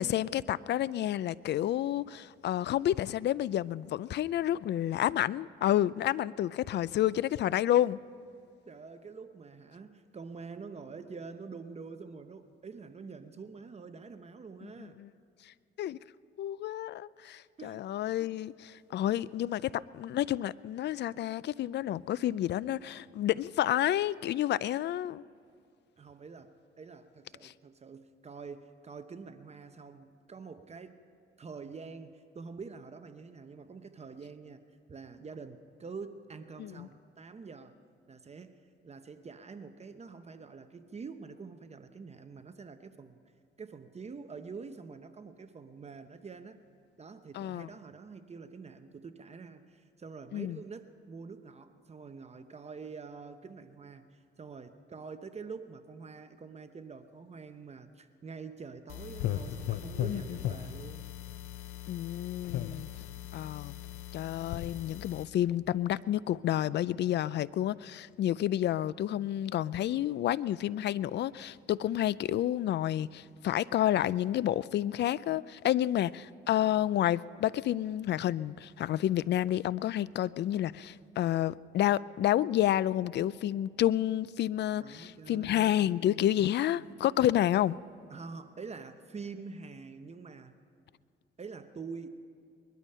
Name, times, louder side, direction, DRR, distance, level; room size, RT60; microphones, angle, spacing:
voice 1, 0.0-8.0 14.8-15.1 15.8-16.0 16.4-25.2 27.4-27.5 36.6-36.9 47.3-47.7 50.3-50.6 60.1-60.4 61.9-62.9 63.3-63.8 64.1-87.8, left 12 dB, 60° left, 20 dB, 0.4 m, -30 dB
voice 2, 8.7-15.0 17.6-17.9 26.0-31.0 31.4-34.6 34.9-37.7 38.1-38.6 38.8-43.2 43.6-46.6 47.0-61.1 84.8-85.7 88.1-90.5 91.4-92.1, right 5 dB, 35° right, 9 dB, 0.8 m, -46 dB
sound 1, 58.9-65.2, left 11 dB, 85° left, 0.7 m, -38 dB
21.0 x 12.0 x 5.6 m, 2.3 s
cardioid pair, 90°, 20 cm